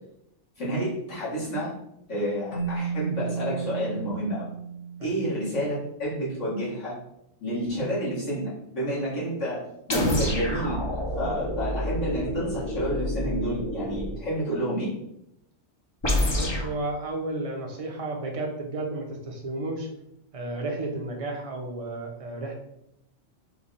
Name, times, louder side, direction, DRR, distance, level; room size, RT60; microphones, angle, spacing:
voice 1, 0.6-1.7 2.1-4.5 5.0-7.0 7.4-9.6 9.9-14.9, equal, 80° left, -8 dB, 2.1 m, -30 dB
Keyboard (musical), 2.5-5.8, right 6 dB, 55° left, 1.0 m, -33 dB
sound 1, 9.9-14.2 16.0-16.7, left 1 dB, 30° left, 0.6 m, -28 dB
voice 2, 16.3-19.9 20.3-22.5, right 2 dB, 35° right, 1 dB, 0.7 m, -32 dB
4.6 x 2.3 x 4.0 m, 0.80 s
omnidirectional pair, 1.2 m